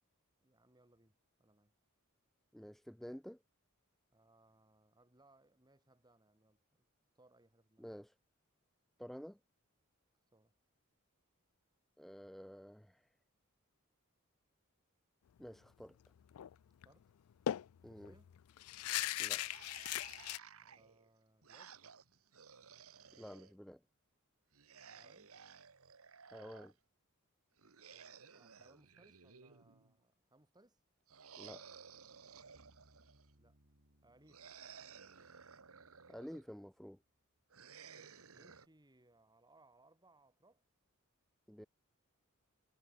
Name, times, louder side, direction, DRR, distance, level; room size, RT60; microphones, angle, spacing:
voice 1, 0.4-1.7 4.1-6.9 7.1-7.8 10.3-10.5 16.8-17.1 17.8-18.3 20.6-21.8 24.8-25.4 27.9-30.8 33.4-33.6 34.0-34.5 38.0-40.7, right 2 dB, 20° right, 3.2 m, -69 dB
voice 2, 2.5-3.4 7.8-8.1 9.0-9.4 12.0-13.1 15.4-16.0 17.8-18.1 19.2-19.4 23.2-23.8 26.3-26.7 31.4-31.6 36.1-37.0 41.5-41.7, equal, ahead, 0.4 m, -50 dB
sound 1, 16.3-16.5 16.8-16.9 17.5-20.4, left 13 dB, 85° left, 0.4 m, -39 dB
sound 2, 19.2-23.5 24.5-26.7 27.6-29.9 31.1-33.3 34.3-36.5 37.5-38.7, right 6 dB, 75° right, 1.6 m, -57 dB
sound 3, 32.5-37.7, equal, 60° right, 6.6 m, -73 dB
head